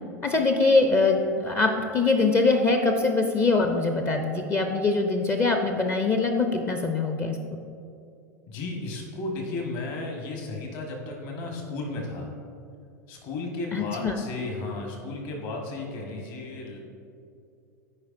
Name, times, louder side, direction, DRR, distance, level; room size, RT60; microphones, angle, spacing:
voice 1, 0.2-7.4 13.7-14.2, left 3 dB, 25° left, 5 dB, 0.6 m, -23 dB
voice 2, 8.5-12.3 13.1-16.8, left 2 dB, 45° left, 1 dB, 1.5 m, -34 dB
13.5 x 5.1 x 2.6 m, 2.6 s
figure-of-eight pair, 85°, 9 cm